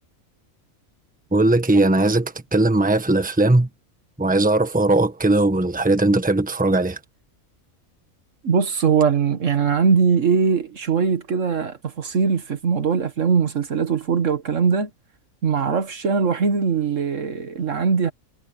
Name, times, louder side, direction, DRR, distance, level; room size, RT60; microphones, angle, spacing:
voice 1, 1.3-3.7 4.2-7.0, right 2 dB, 5° right, 1.3 m, -19 dB
voice 2, 8.4-14.9 15.4-18.1, right 5 dB, 60° right, 1.7 m, -21 dB
omnidirectional pair, 1.5 m